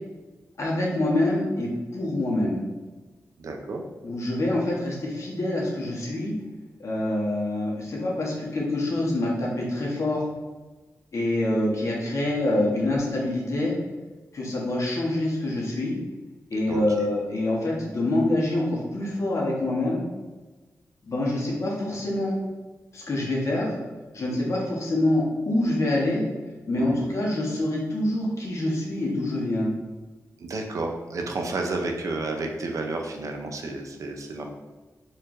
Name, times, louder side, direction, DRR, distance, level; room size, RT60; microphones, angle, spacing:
voice 1, 0.6-2.6 4.0-6.3 6.8-10.3 11.1-13.7 14.3-16.0 16.5-20.1 21.0-22.4 22.9-23.7 24.1-26.3 26.7-29.7, left 1 dB, 60° left, -3 dB, 1.1 m, -26 dB
voice 2, 3.4-3.8 16.7-17.1 26.8-27.1 30.4-34.5, right 2 dB, 65° right, 3 dB, 0.5 m, -31 dB
4.3 x 3.1 x 2.6 m, 1.2 s
wide cardioid pair, 80°, 6 cm